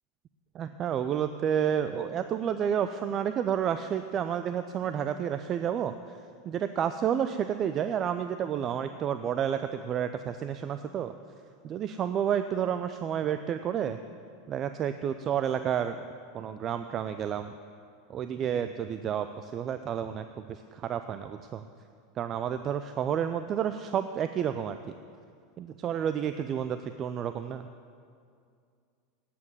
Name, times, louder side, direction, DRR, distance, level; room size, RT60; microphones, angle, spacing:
voice 1, 0.5-5.9 6.4-11.1 11.6-14.0 14.5-16.0 16.3-17.5 18.1-21.6 22.2-24.8 25.6-27.7, right 9 dB, 40° right, 10 dB, 0.5 m, -30 dB
9.5 x 8.5 x 9.6 m, 2.3 s
hypercardioid pair, 85°, 0 cm